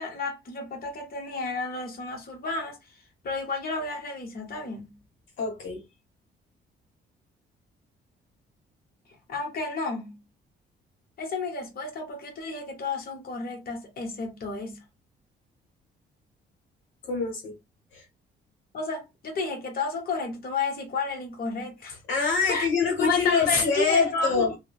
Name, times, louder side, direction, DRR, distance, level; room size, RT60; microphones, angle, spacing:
voice 1, 0.0-5.0 9.3-10.2 11.2-14.8 18.7-22.0 22.5-22.7 23.0-24.5, left 4 dB, 50° left, 1.0 m, -31 dB
voice 2, 5.4-5.8 17.0-17.5 17.9-18.0 22.1-24.5, left 5 dB, 75° left, 1.0 m, -25 dB
2.9 x 2.0 x 2.3 m
cardioid pair, 90°, 20 cm